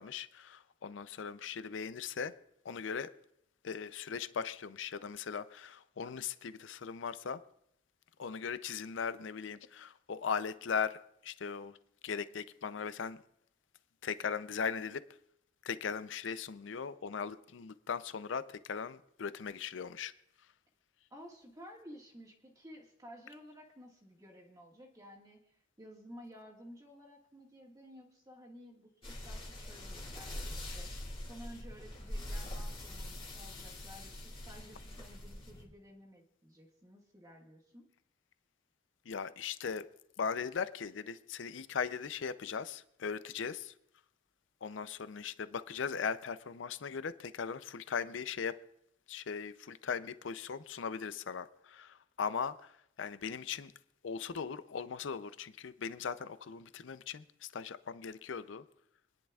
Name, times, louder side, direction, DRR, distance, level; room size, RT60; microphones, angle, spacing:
voice 1, 0.0-2.3 2.6-3.1 3.6-7.4 8.2-11.0 11.2-11.7 12.0-13.2 14.0-15.0 15.6-20.1 39.1-39.9 40.2-43.7 44.6-48.5 49.1-52.7 53.0-53.7 54.0-58.6, left 6 dB, 75° left, 0.5 m, -39 dB
voice 2, 21.1-37.9, equal, 20° right, 1.7 m, -54 dB
sound 1, 29.0-35.6, left 1 dB, 30° left, 2.2 m, -43 dB
26.5 x 10.5 x 2.4 m
head